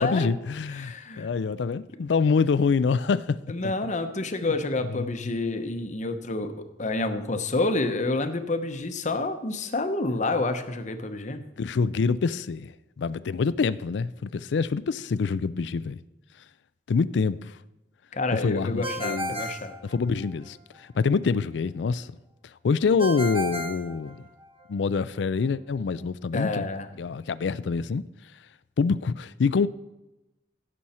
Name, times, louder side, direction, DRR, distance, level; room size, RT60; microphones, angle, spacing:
voice 1, 0.0-3.4 3.6-3.7 4.4-4.5 4.9-5.4 11.6-16.0 16.9-17.6 18.4-19.4 19.8-22.1 22.6-24.3 24.7-26.7 27.0-28.0 28.8-29.7, left 5 dB, 85° left, 0.4 m, -26 dB
voice 2, 0.7-1.3 3.5-6.5 6.8-11.4 18.1-19.7 26.3-26.9, left 2 dB, 45° left, 0.9 m, -28 dB
Ringtone, 18.8-20.5 23.0-24.7, equal, 30° right, 1.4 m, -34 dB
16.5 x 6.3 x 4.3 m
head